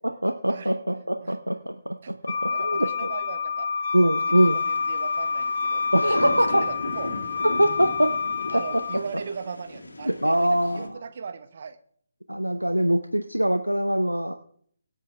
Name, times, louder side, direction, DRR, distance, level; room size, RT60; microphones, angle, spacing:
voice 1, 0.0-2.0 2.2-3.1 3.9-4.6 5.9-6.6 7.4-8.1 8.5-8.8 10.0-11.0 12.3-14.3, equal, 90° right, 8 dB, 0.8 m, -23 dB
Wind instrument woodwind instrument, 2.3-9.0, left 5 dB, 45° left, 0.9 m, -28 dB
voice 2, 2.5-3.7 4.0-7.2 8.5-11.8, right 5 dB, 45° right, 12 dB, 0.9 m, -38 dB
sound 1, 4.4-10.9, left 1 dB, 65° left, 3.0 m, -38 dB
23.5 x 8.3 x 3.4 m, 0.63 s
figure-of-eight pair, 145°, 0 cm